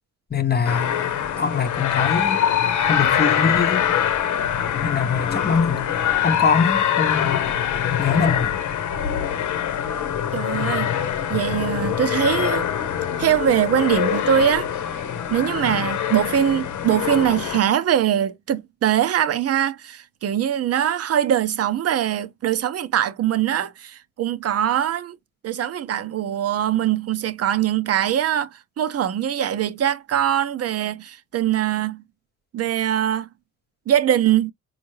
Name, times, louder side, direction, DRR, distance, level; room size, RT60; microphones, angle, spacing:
voice 1, 0.3-2.4 2.9-4.0 4.8-5.9 6.2-7.3 8.0-8.5, left 5 dB, 35° left, 0.8 m, -23 dB
sound 1, 0.6-17.6, left 9 dB, 75° left, 0.9 m, -23 dB
voice 2, 10.3-10.9 11.3-12.7 13.2-14.7 15.3-25.2 25.4-32.0 32.5-33.3 33.9-34.5, right 10 dB, 55° right, 0.7 m, -22 dB
4.3 x 2.3 x 3.1 m
cardioid pair, 90°, 30 cm